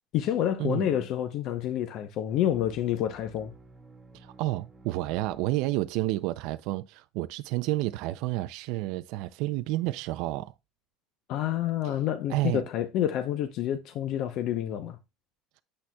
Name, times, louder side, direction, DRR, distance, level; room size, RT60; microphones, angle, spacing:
voice 1, 0.1-3.5 11.3-15.0, left 11 dB, 50° left, 0.7 m, -28 dB
sound 1, 2.3-6.1, right 1 dB, 10° right, 1.7 m, -54 dB
voice 2, 4.1-10.5 12.3-12.6, right 18 dB, 65° right, 0.4 m, -30 dB
8.6 x 7.4 x 2.2 m
cardioid pair, 150°, 0 cm